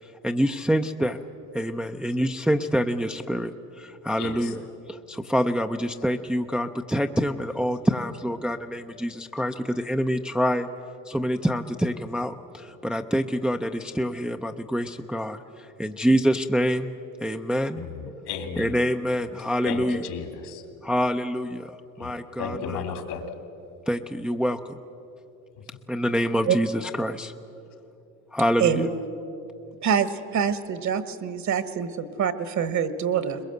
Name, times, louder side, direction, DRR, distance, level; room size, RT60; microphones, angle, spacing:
voice 1, 0.2-1.2 1.5-3.5 3.8-4.6 4.9-10.7 11.1-15.4 15.8-16.9 17.2-17.8 18.6-20.1 20.8-21.7 22.0-22.8 23.9-24.6 25.9-27.3 28.3-28.9, equal, ahead, 5 dB, 0.5 m, -26 dB
voice 2, 4.2-4.5 17.8-18.8 19.6-20.6 21.9-23.3 25.5-25.7, left 6 dB, 75° left, 6 dB, 2.9 m, -34 dB
voice 3, 30.3-33.4, right 8 dB, 45° right, 13 dB, 1.3 m, -25 dB
21.5 x 21.0 x 7.9 m, 2.9 s
supercardioid pair, 105°, 41 cm